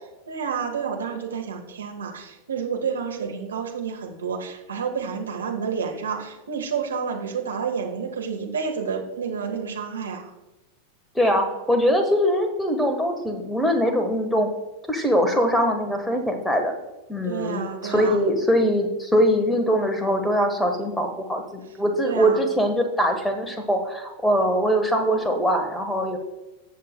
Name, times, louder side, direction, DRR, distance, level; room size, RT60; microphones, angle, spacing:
voice 1, 0.3-10.3 17.3-18.2 22.0-22.4, right 6 dB, 70° right, 3 dB, 1.3 m, -29 dB
voice 2, 11.1-14.5 14.9-16.7 17.1-26.2, equal, 5° left, 5 dB, 1.3 m, -22 dB
18.0 x 6.8 x 2.2 m, 1.0 s
figure-of-eight pair, 90°, 0 cm